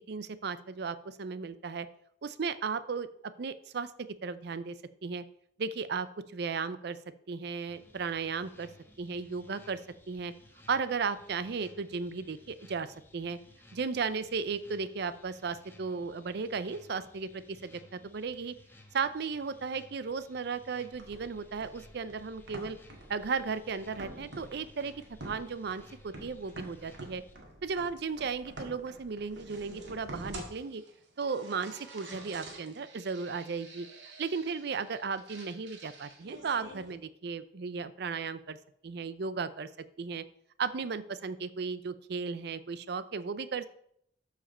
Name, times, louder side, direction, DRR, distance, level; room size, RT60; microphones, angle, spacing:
voice 1, 0.0-1.9 2.2-3.1 3.4-3.9 4.2-4.7 5.0-5.2 5.6-6.1 6.3-7.0 7.3-8.7 9.0-9.8 10.1-10.3 10.7-12.9 13.1-13.4 13.7-18.5 18.9-22.8 23.1-24.9 25.2-27.2 27.6-30.8 31.2-33.9 34.2-38.6 38.8-39.7 40.0-40.2 40.6-43.7, right 5 dB, 65° right, 14 dB, 0.5 m, -35 dB
sound 1, 7.7-27.4, left 1 dB, 15° left, 1.0 m, -59 dB
sound 2, 20.9-36.9, right 2 dB, 90° right, 1.9 m, -48 dB
12.5 x 4.9 x 4.3 m, 0.69 s
head